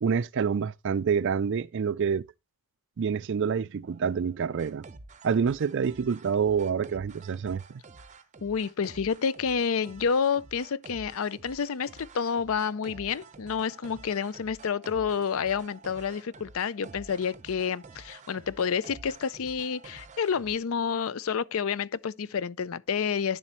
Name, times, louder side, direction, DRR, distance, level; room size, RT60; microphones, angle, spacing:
voice 1, 0.0-2.3 3.0-4.8 5.2-7.8, right 6 dB, 55° right, 0.4 m, -27 dB
sound 1, 3.9-20.5, right 3 dB, 35° right, 0.8 m, -50 dB
voice 2, 8.4-23.4, left 6 dB, 65° left, 0.5 m, -29 dB
10.5 x 7.5 x 3.0 m
head